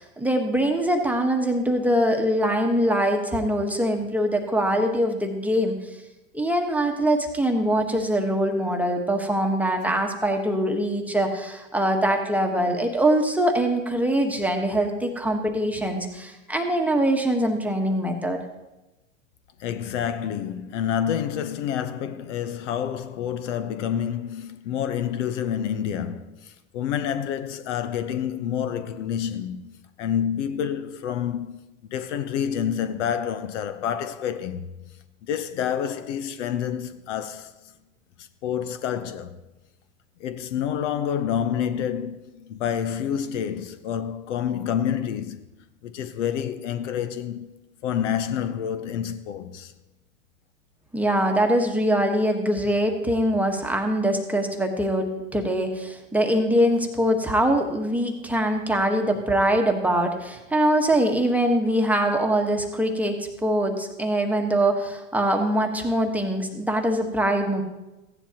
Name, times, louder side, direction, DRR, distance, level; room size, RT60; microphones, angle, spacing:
voice 1, 0.0-6.0 6.3-18.4 50.9-67.6, right 1 dB, 5° right, 1.2 m, -23 dB
voice 2, 19.6-29.7 30.0-31.6 31.9-34.7 35.2-37.5 38.2-39.4 40.2-45.4 45.8-47.5 47.8-49.7, left 9 dB, 65° left, 0.9 m, -28 dB
15.5 x 10.0 x 2.9 m
hypercardioid pair, 105°, 38 cm